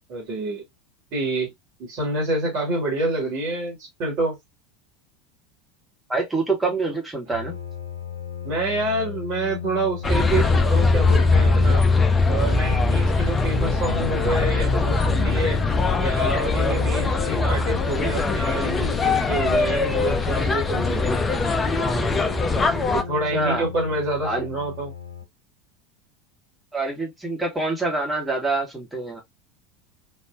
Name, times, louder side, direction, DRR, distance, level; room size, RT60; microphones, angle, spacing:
voice 1, 0.1-0.6 1.1-1.5 1.8-4.4 8.4-11.8 12.3-15.6 16.0-21.0 22.9-24.9, right 2 dB, 45° right, 1.5 m, -27 dB
voice 2, 6.1-7.6 23.3-23.7 24.2-24.4 26.7-29.2, right 3 dB, 10° right, 1.4 m, -26 dB
sound 1, 7.3-25.2, left 7 dB, 75° left, 0.5 m, -36 dB
sound 2, 10.0-23.0, left 3 dB, 20° left, 0.5 m, -21 dB
3.3 x 2.6 x 2.3 m
figure-of-eight pair, 75°, 0 cm